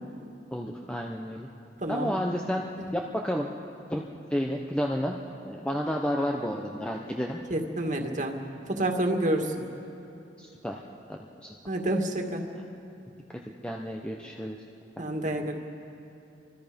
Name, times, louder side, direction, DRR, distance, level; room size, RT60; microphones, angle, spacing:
voice 1, 0.5-1.5 1.9-3.5 3.9-4.0 4.3-5.2 5.4-7.4 10.4-10.8 11.1-11.5 13.6-14.6, equal, 5° left, 0 dB, 0.9 m, -31 dB
voice 2, 1.8-2.2 7.5-8.4 8.7-9.6 11.7-12.4 15.0-15.5, right 1 dB, 40° right, 3 dB, 2.2 m, -28 dB
29.5 x 25.0 x 5.3 m, 2.8 s
head